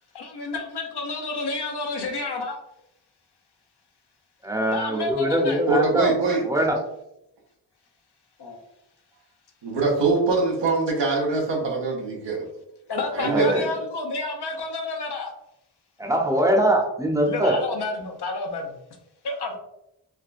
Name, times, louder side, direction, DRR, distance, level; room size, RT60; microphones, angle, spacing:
voice 1, 0.1-2.6 4.7-5.6 8.4-8.6 12.9-15.3 17.2-18.7 19.2-19.6, left 3 dB, 65° left, 2 dB, 0.8 m, -30 dB
voice 2, 4.4-6.1 6.4-6.8 13.3-13.6 16.0-17.6, right 1 dB, 10° right, 1 dB, 0.7 m, -22 dB
voice 3, 5.7-6.4 9.6-12.5 13.1-13.5, right 3 dB, 85° right, -1 dB, 0.9 m, -23 dB
3.5 x 2.2 x 2.5 m, 0.84 s
cardioid pair, 45°, 43 cm